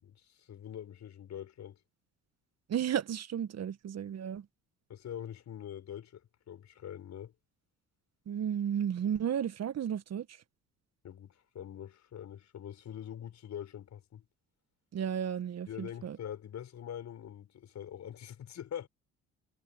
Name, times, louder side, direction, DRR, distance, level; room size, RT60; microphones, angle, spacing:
voice 1, 0.0-1.8 4.9-6.2 6.5-7.3 11.0-14.3 15.7-18.9, left 10 dB, 60° left, 4.8 m, -44 dB
voice 2, 2.7-4.4 8.3-10.3 14.9-16.2, right 9 dB, 50° right, 1.5 m, -33 dB
hypercardioid pair, 60°, 32 cm